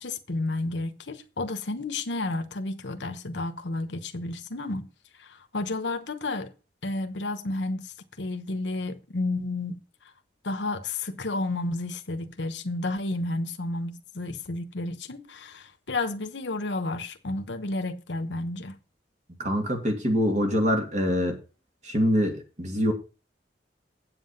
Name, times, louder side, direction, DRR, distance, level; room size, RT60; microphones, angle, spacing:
voice 1, 0.0-4.9 5.2-6.5 6.8-9.8 10.4-18.8, left 2 dB, 70° left, 1.1 m, -31 dB
voice 2, 19.4-21.4 21.8-22.9, equal, 40° right, 2.6 m, -24 dB
8.6 x 7.7 x 5.6 m
head